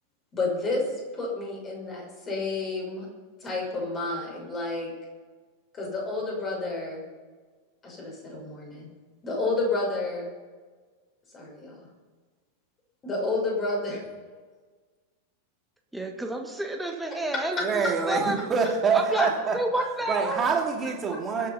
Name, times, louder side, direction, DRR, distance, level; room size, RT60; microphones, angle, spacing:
voice 1, 0.3-3.1 3.4-4.9 5.7-7.0 7.8-8.9 9.2-10.3 11.3-11.8 13.0-14.0 17.3-17.4 19.1-19.3 19.7-19.8, left 2 dB, 25° left, -1 dB, 5.7 m, -30 dB
voice 2, 15.9-17.8 18.1-18.4 18.9-20.4, right 1 dB, 5° right, 2 dB, 1.7 m, -30 dB
voice 3, 17.6-19.6 20.1-21.5, right 5 dB, 20° right, 2 dB, 2.6 m, -26 dB
22.0 x 8.6 x 5.6 m, 1.4 s
figure-of-eight pair, 90°, 0 cm